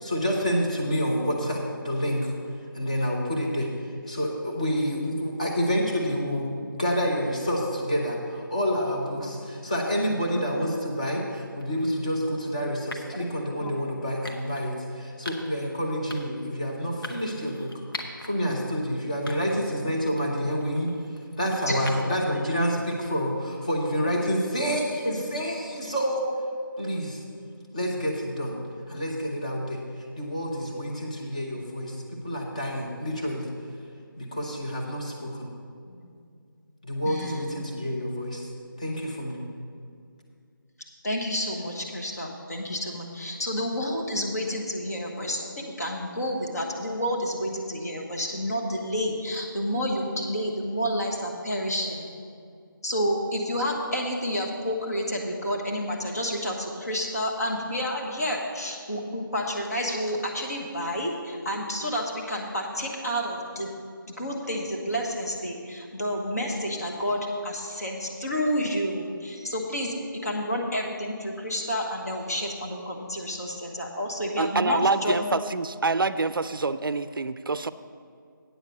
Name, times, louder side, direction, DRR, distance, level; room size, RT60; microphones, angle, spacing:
voice 1, 0.0-2.3 2.7-3.7 4.1-6.5 6.8-17.7 18.2-20.9 21.4-26.3 26.8-27.2 27.7-28.5 28.9-29.8 30.2-32.0 32.2-33.5 34.2-35.5 36.8-38.5 38.8-39.4, equal, 20° left, -1 dB, 0.8 m, -28 dB
sound 1, 11.6-11.8 12.9-13.2 14.2-14.7 15.3-15.6 16.1-16.4 17.0-18.3 18.7-18.8 19.3-19.7 20.1-22.3, left 1 dB, 85° left, 1.3 m, -41 dB
voice 2, 21.7-22.0 35.8-36.1 37.0-37.5 41.0-52.1 52.8-63.7 64.1-75.2, equal, 45° left, -1 dB, 1.4 m, -30 dB
voice 3, 74.4-77.7, right 3 dB, 75° right, 14 dB, 0.4 m, -26 dB
9.0 x 6.5 x 6.5 m, 2.3 s
figure-of-eight pair, 175°, 12 cm